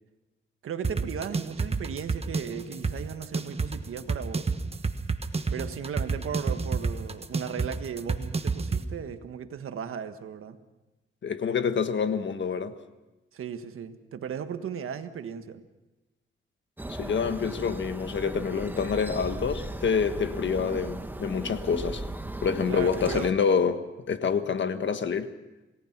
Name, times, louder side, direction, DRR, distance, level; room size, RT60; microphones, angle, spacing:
voice 1, 0.6-4.5 5.5-10.6 13.3-15.6 22.7-23.4, right 7 dB, 85° right, 1.5 m, -36 dB
sound 1, 0.8-8.8, right 4 dB, 30° right, 1.3 m, -29 dB
voice 2, 11.2-12.7 16.9-22.0 22.4-23.8 24.1-25.3, left 6 dB, 60° left, 1.5 m, -27 dB
sound 2, 16.8-23.3, right 1 dB, 10° right, 1.2 m, -37 dB
27.5 x 18.5 x 6.0 m
wide cardioid pair, 110°, 21 cm